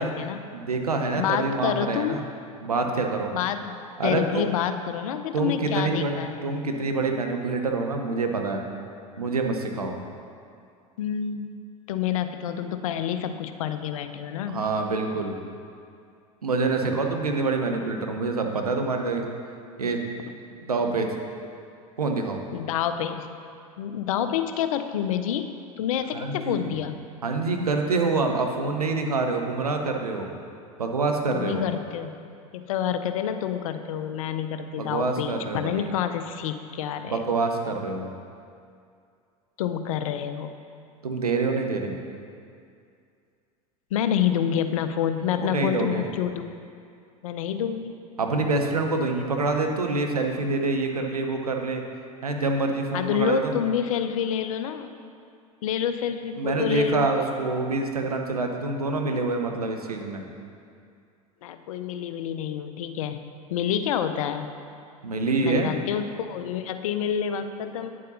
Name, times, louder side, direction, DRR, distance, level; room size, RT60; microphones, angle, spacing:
voice 1, 0.0-0.4 1.1-2.2 3.3-6.5 11.0-11.6 11.9-14.6 17.3-17.4 22.5-23.3 23.8-27.0 31.3-32.1 32.5-37.2 39.6-40.5 43.9-46.5 47.2-47.9 52.9-54.9 55.6-57.1 61.4-63.2 63.5-64.5 65.4-67.9, left 9 dB, 65° left, 9 dB, 0.5 m, -28 dB
voice 2, 0.5-2.2 2.6-3.3 4.0-4.5 5.3-8.6 9.2-10.0 14.5-15.4 16.4-19.2 19.8-20.0 20.6-21.1 22.0-22.4 26.1-26.7 27.2-30.3 30.8-31.6 34.8-35.9 37.0-38.1 41.0-42.0 45.4-46.1 48.2-51.8 52.2-53.5 56.4-60.2 65.0-65.7, right 3 dB, 85° right, 3 dB, 0.7 m, -26 dB
9.4 x 7.4 x 2.7 m, 2.4 s
figure-of-eight pair, 80°, 19 cm